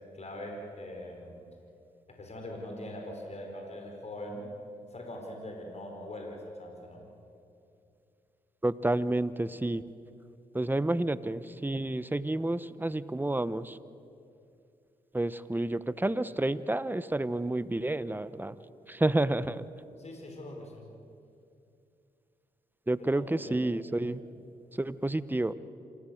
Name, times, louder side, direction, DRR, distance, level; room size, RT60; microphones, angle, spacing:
voice 1, 0.1-1.4 2.1-4.5 4.9-7.1 19.1-19.2 20.0-20.9 23.0-23.6 24.0-24.1, left 1 dB, 45° left, 1 dB, 4.8 m, -42 dB
voice 2, 8.6-9.8 10.5-13.8 15.1-18.6 18.9-19.6 22.9-24.2 24.7-25.5, right 1 dB, 10° right, 15 dB, 0.9 m, -30 dB
27.0 x 16.0 x 7.9 m, 2.5 s
supercardioid pair, 50°, 16 cm